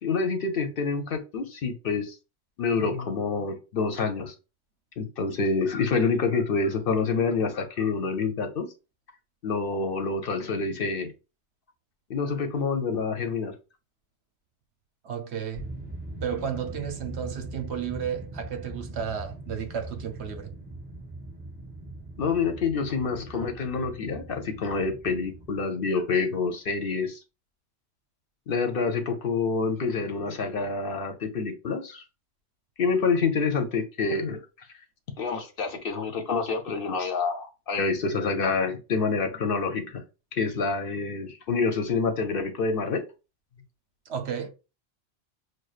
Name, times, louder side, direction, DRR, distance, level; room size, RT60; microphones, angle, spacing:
voice 1, 0.0-2.2 2.6-4.3 5.0-8.7 9.4-11.1 12.1-13.5 22.2-27.2 28.5-32.0 32.8-34.4 35.2-40.0 40.3-43.0, left 4 dB, 60° left, 0.8 m, -27 dB
voice 2, 15.0-15.7 16.2-20.5 44.1-44.5, right 8 dB, 70° right, 1.0 m, -33 dB
sound 1, 15.5-25.6, right 2 dB, 20° right, 1.3 m, -41 dB
6.3 x 2.2 x 2.4 m
omnidirectional pair, 1.2 m